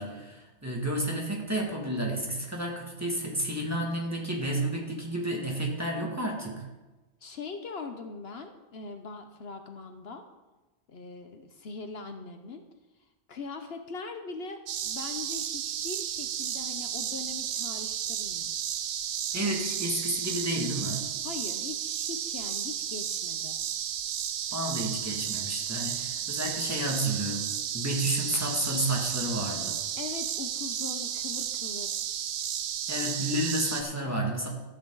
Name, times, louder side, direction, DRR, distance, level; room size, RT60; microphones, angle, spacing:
voice 1, 0.0-6.7 19.3-21.0 24.5-29.8 32.9-34.5, right 1 dB, 15° right, -1 dB, 1.9 m, -31 dB
voice 2, 7.2-10.2 10.9-12.6 13.3-18.5 21.2-23.6 30.0-32.0, left 4 dB, 65° left, 6 dB, 1.0 m, -41 dB
sound 1, 14.7-33.8, right 10 dB, 85° right, 0.9 m, -33 dB
13.5 x 8.5 x 3.9 m, 1.1 s
omnidirectional pair, 1.2 m